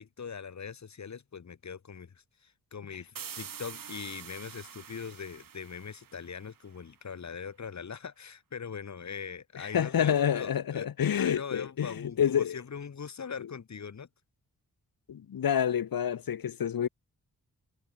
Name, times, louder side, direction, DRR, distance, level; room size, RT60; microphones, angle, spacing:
voice 1, 0.0-10.9 11.2-14.1, left 6 dB, 55° left, 4.5 m, -41 dB
sound 1, 3.2-6.8, right 8 dB, 70° right, 6.3 m, -46 dB
voice 2, 9.5-12.6 15.1-16.9, left 9 dB, 80° left, 4.9 m, -28 dB
wide cardioid pair, 105°, 34 cm